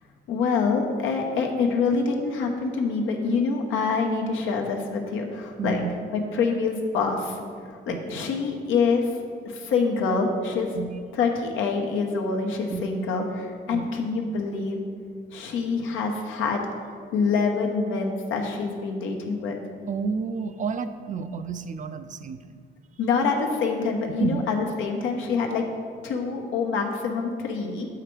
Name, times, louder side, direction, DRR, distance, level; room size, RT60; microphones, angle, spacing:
voice 1, 0.3-5.8 6.1-7.4 7.6-9.1 9.4-10.7 11.2-14.8 15.3-16.6 17.1-19.6 23.0-25.6 26.0-27.9, left 4 dB, 85° left, 2 dB, 0.9 m, -26 dB
voice 2, 5.6-5.9 7.9-8.2 10.7-10.9 12.7-12.9 13.7-13.9 19.9-22.7 24.1-24.4, right 5 dB, 40° right, 10 dB, 0.4 m, -31 dB
7.2 x 4.9 x 4.5 m, 2.1 s
cardioid pair, 90°, 20 cm